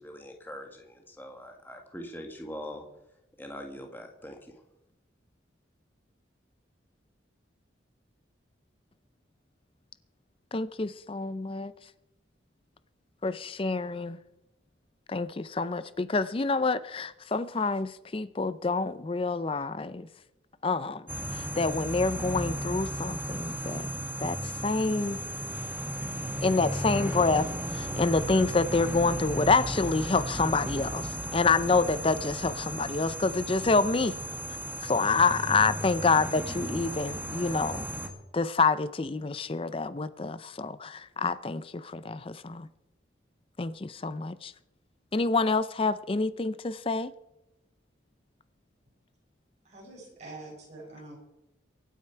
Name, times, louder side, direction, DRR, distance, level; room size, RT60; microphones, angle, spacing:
voice 1, 0.0-2.8 3.4-4.6, left 1 dB, 10° left, 1.6 m, -42 dB
voice 2, 10.5-11.7 13.2-14.2 15.1-20.1 20.6-23.9 24.2-25.2 26.4-34.2 34.8-37.9 38.3-42.7 43.6-44.5 45.1-47.1, left 3 dB, 30° left, 0.4 m, -27 dB
sound 1, 21.1-38.1, right 1 dB, 10° right, 1.5 m, -35 dB
voice 3, 49.6-51.2, right 2 dB, 35° right, 5.5 m, -45 dB
24.0 x 9.3 x 4.5 m
head